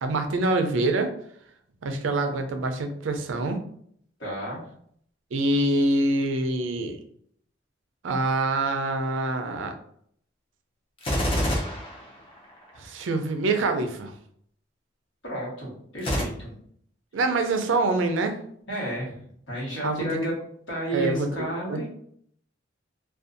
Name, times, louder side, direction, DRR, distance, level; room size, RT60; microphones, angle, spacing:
voice 1, 0.0-1.1 1.8-3.6 5.3-7.0 8.0-9.7 12.8-14.1 17.1-18.4 19.8-20.1 20.9-21.9, right 2 dB, 90° right, 6 dB, 0.4 m, -25 dB
voice 2, 4.2-4.6 15.2-16.6 18.7-20.3 20.7-21.9, right 1 dB, 70° left, -5 dB, 1.2 m, -32 dB
Gunshot gunfire, 11.0-12.8 16.0-16.2, equal, 30° left, 0.5 m, -26 dB
2.5 x 2.3 x 2.5 m, 0.64 s
head